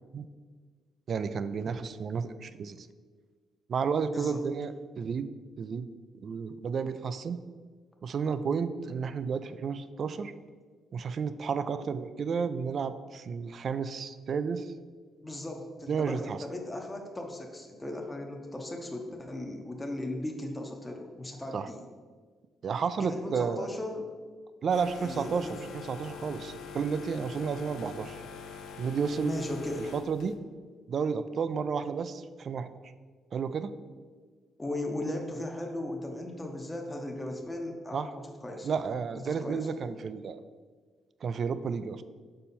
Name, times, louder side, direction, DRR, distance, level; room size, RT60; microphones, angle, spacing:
voice 1, 1.1-2.9 3.7-5.3 5.6-5.9 6.2-7.4 8.0-10.3 10.9-14.7 15.9-16.4 21.5-21.7 22.6-23.7 24.6-28.2 28.8-29.4 29.9-30.4 30.9-32.7 33.3-33.7 37.9-38.1 38.6-40.4 41.2-42.0, right 6 dB, 55° right, 13 dB, 0.3 m, -32 dB
voice 2, 4.0-4.4 15.2-21.8 23.0-24.1 25.0-25.5 29.2-29.9 34.6-38.7 39.2-39.7, left 1 dB, 15° left, 1 dB, 0.7 m, -37 dB
sound 1, 24.7-30.4, left 6 dB, 80° left, 0.5 m, -44 dB
5.5 x 4.3 x 4.2 m, 1.5 s
cardioid pair, 90°, 0 cm